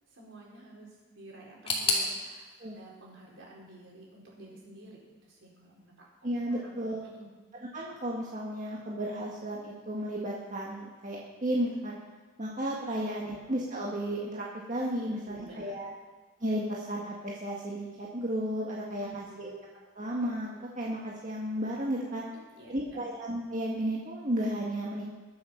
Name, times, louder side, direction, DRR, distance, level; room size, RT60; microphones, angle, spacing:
voice 1, 0.1-6.1 6.5-6.8 7.0-7.3 12.9-13.3 15.0-15.9 18.9-19.5 22.2-23.0, right 1 dB, 65° right, -4 dB, 4.6 m, -51 dB
sound 1, 1.7-4.5 4.8-5.6 5.9-6.0 6.8-6.9, left 3 dB, 30° left, 2.4 m, -34 dB
voice 2, 6.2-7.0 7.7-12.0 12.4-15.9 16.4-19.5 19.9-22.2 22.7-25.0, right 1 dB, 40° right, -4 dB, 1.7 m, -33 dB
21.5 x 7.6 x 5.8 m, 1.3 s
head